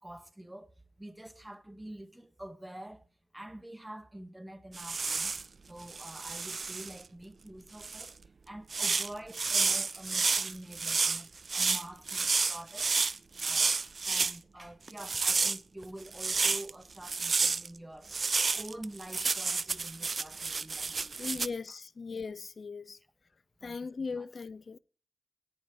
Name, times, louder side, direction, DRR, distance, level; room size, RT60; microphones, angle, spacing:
voice 1, 0.0-3.1 3.3-5.4 5.6-8.2 8.5-13.7 14.0-21.8 23.6-23.9 24.2-24.3, right 1 dB, 15° right, 1.8 m, -47 dB
sound 1, 4.7-5.5 5.9-7.0 7.8-8.1 8.7-14.4 14.9-16.7 17.0-17.7 18.1-21.5, right 4 dB, 55° right, 0.6 m, -30 dB
voice 2, 21.2-23.0 23.6-24.8, left 4 dB, 55° left, 0.6 m, -38 dB
17.0 x 11.0 x 5.0 m
cardioid pair, 50°, 0 cm